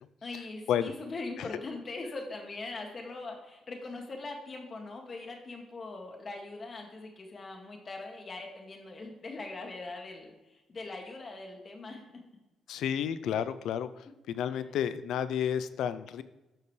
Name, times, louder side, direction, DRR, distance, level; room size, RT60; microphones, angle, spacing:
voice 1, 0.2-12.2, left 3 dB, 40° left, 2 dB, 2.1 m, -41 dB
voice 2, 12.7-16.2, left 9 dB, 80° left, 14 dB, 0.5 m, -31 dB
12.0 x 6.7 x 3.3 m, 1.0 s
cardioid pair, 90°, 0 cm